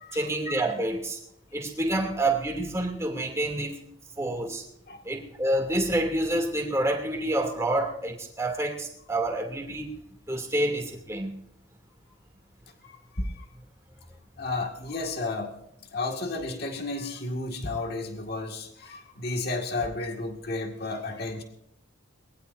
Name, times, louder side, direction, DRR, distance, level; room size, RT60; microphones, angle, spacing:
voice 1, 0.1-1.2 1.5-3.8 4.2-4.6 5.0-10.0 10.3-11.3, right 1 dB, 15° right, 1 dB, 2.7 m, -28 dB
voice 2, 12.8-13.5 14.4-15.6 15.9-21.4, left 2 dB, 55° left, 3 dB, 2.0 m, -32 dB
22.5 x 20.5 x 2.7 m, 0.76 s
head